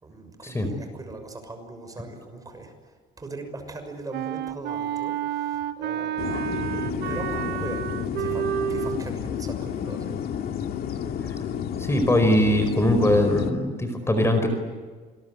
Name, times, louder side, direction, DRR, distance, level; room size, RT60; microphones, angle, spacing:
voice 1, 0.0-7.9 8.2-10.2, right 2 dB, 20° right, 6 dB, 6.3 m, -40 dB
Wind instrument woodwind instrument, 4.1-9.0, right 11 dB, 75° right, 1.1 m, -30 dB
sound 1, 6.2-13.5, left 8 dB, 65° left, 2.3 m, -31 dB
voice 2, 11.8-14.5, left 1 dB, 15° left, 7 dB, 4.8 m, -21 dB
27.5 x 22.0 x 9.5 m, 1.4 s
cardioid pair, 110°, 17 cm